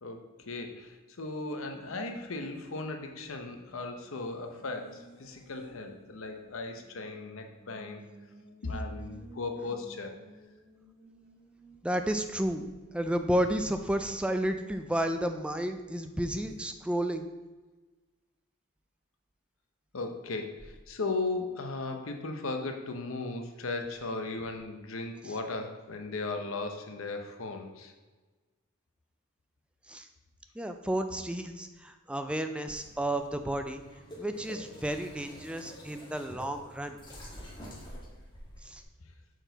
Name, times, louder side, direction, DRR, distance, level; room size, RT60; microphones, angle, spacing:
voice 1, 0.0-8.0 8.6-10.2 19.9-27.9, left 3 dB, 65° left, 4 dB, 0.7 m, -37 dB
Race car auto racing, 1.1-17.4, right 1 dB, 75° right, 1.9 m, -58 dB
voice 2, 11.8-12.7 12.9-17.3 25.2-25.4 29.9-30.1 30.6-33.8 34.2-37.0 38.6-38.8, right 1 dB, 5° right, 7 dB, 0.3 m, -32 dB
sound 1, 32.7-38.8, equal, 20° left, 1.4 m, -47 dB
6.2 x 4.4 x 3.9 m, 1.3 s
head